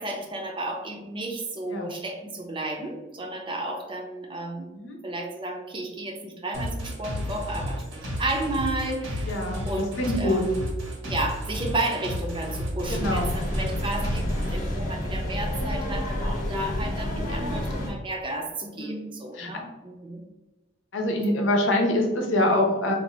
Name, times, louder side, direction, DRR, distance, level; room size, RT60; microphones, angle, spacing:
voice 1, 0.0-4.7 5.0-9.3 9.7-10.7 11.0-20.2, right 2 dB, 25° right, 2 dB, 0.5 m, -32 dB
sound 1, 6.5-14.5, equal, 90° right, 1.2 m, -32 dB
voice 2, 9.2-9.7 10.0-10.4 12.9-13.4 18.8-19.1 19.3-19.5 20.9-22.9, left 1 dB, 90° left, 2 dB, 0.8 m, -25 dB
sound 2, 12.8-17.9, left 1 dB, 45° left, 0.8 m, -29 dB
2.7 x 2.4 x 4.2 m, 1.1 s
head